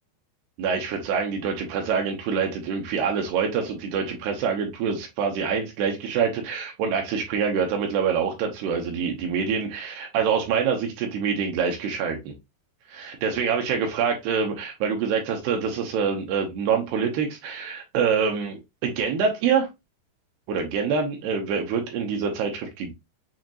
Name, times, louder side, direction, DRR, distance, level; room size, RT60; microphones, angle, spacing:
voice 1, 0.6-12.3 12.9-19.7 20.5-22.9, right 6 dB, 75° right, 2.6 m, -26 dB
7.2 x 2.8 x 2.5 m
omnidirectional pair, 5.0 m